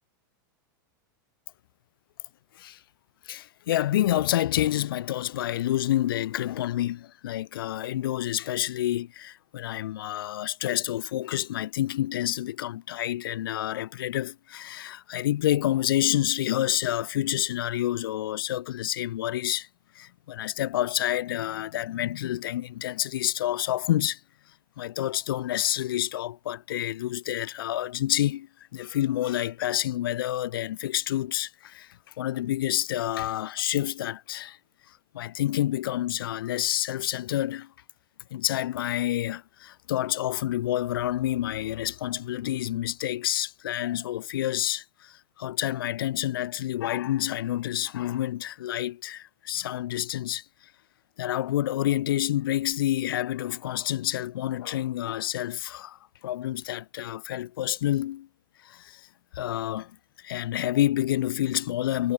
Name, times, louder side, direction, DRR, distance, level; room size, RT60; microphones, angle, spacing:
voice 1, 3.3-19.7 19.9-24.2 24.8-34.6 35.1-37.7 38.3-50.4 51.2-58.3 58.6-59.0 59.3-59.9 60.2-62.1, left 13 dB, 80° left, 0.7 m, -28 dB
hypercardioid pair, 125°, 12 cm